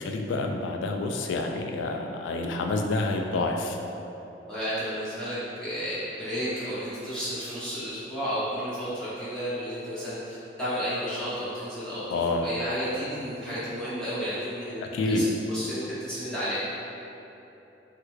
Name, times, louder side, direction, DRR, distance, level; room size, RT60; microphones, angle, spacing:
voice 1, 0.0-3.8 12.1-12.5 14.8-15.2, left 2 dB, 85° left, 3 dB, 0.3 m, -28 dB
voice 2, 4.5-16.6, equal, 5° left, -12 dB, 0.7 m, -32 dB
3.3 x 2.3 x 3.1 m, 3.0 s
head